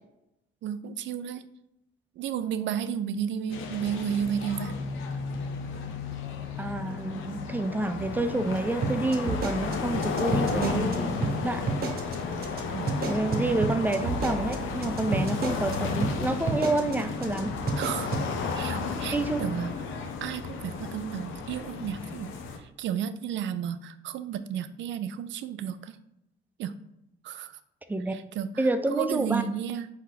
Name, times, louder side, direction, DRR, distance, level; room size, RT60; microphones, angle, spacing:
voice 1, 0.6-1.4 2.2-4.8 12.7-12.9 17.8-18.1 18.5-19.8 20.2-26.0 26.6-26.8 27.2-27.6 28.1-29.9, right 8 dB, 70° right, 12 dB, 0.4 m, -32 dB
sound 1, 3.5-22.6, left 4 dB, 80° left, 0.7 m, -33 dB
voice 2, 6.6-11.7 13.0-17.5 19.1-19.4 27.9-28.1 28.6-29.4, right 2 dB, 10° right, 8 dB, 0.4 m, -28 dB
sound 2, 8.8-10.9 11.2-11.3 11.7-12.1 12.4-12.6 12.9-15.7 16.0-16.1 16.5-16.9 17.2-17.4 17.7-18.2, right 4 dB, 50° right, 1.0 m, -30 dB
4.5 x 2.8 x 3.9 m, 0.84 s
cardioid pair, 90°, 20 cm